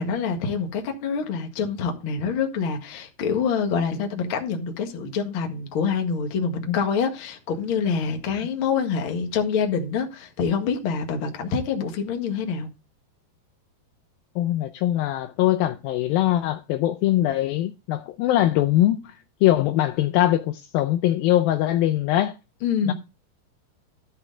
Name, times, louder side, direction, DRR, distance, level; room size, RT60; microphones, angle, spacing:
voice 1, 0.0-12.7 22.6-22.9, left 6 dB, 45° left, 1.9 m, -26 dB
voice 2, 14.4-19.1 19.4-22.3 22.8-22.9, left 13 dB, 80° left, 2.3 m, -22 dB
13.0 x 6.1 x 3.8 m
omnidirectional pair, 4.5 m